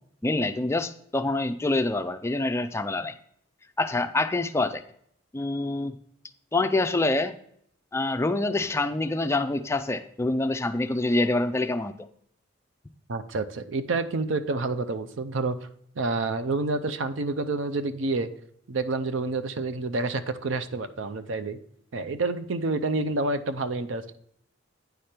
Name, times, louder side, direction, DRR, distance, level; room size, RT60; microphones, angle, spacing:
voice 1, 0.2-3.1 3.8-4.8 5.3-6.0 6.5-7.4 7.9-11.9, left 2 dB, 15° left, 8 dB, 0.3 m, -26 dB
voice 2, 13.1-15.6 16.0-18.3 18.7-21.6 21.9-24.2, right 3 dB, 65° right, 10 dB, 0.6 m, -28 dB
9.4 x 5.1 x 4.4 m, 0.67 s
head